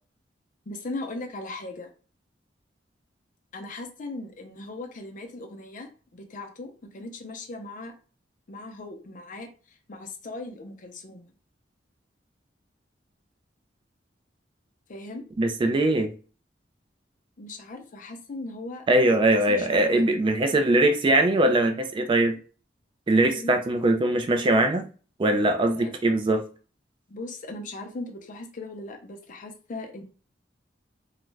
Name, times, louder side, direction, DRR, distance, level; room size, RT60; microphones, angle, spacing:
voice 1, 0.7-1.9 3.5-7.9 8.5-11.3 14.9-15.2 17.4-18.8 19.1-20.1 23.3-23.6 25.6-25.9 27.1-30.0, left 2 dB, 45° left, 4 dB, 0.5 m, -38 dB
voice 2, 15.4-16.1 18.9-22.4 23.1-24.9 25.2-26.4, right 1 dB, 30° right, 6 dB, 0.3 m, -21 dB
2.4 x 2.1 x 3.1 m, 0.37 s
head